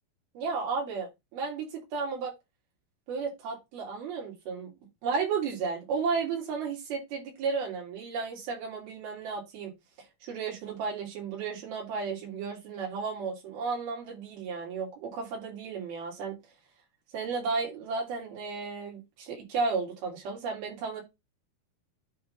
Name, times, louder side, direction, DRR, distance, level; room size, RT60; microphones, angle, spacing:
voice 1, 0.3-2.3 3.1-4.7 5.0-9.7 10.2-16.4 17.1-21.0, right 5 dB, 80° right, 4.9 m, -33 dB
9.3 x 3.7 x 5.5 m
omnidirectional pair, 4.3 m